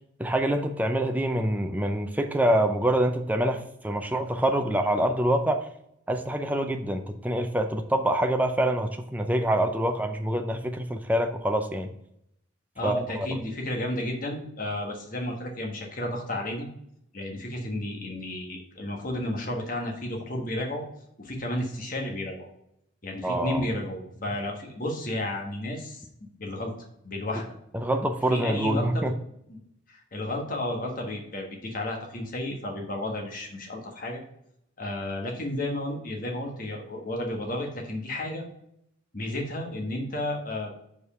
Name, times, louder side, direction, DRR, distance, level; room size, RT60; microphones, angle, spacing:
voice 1, 0.2-5.6 6.1-11.9 12.8-13.4 23.2-23.7 27.7-29.1, right 1 dB, 10° right, 5 dB, 0.5 m, -26 dB
voice 2, 12.7-16.7 17.1-20.8 21.2-22.5 23.0-26.1 26.4-26.7 27.0-27.5 28.3-29.1 29.5-29.6 29.9-34.2 34.8-38.4 39.1-40.7, left 1 dB, 40° left, 1 dB, 1.4 m, -32 dB
5.2 x 4.8 x 5.6 m, 0.76 s
head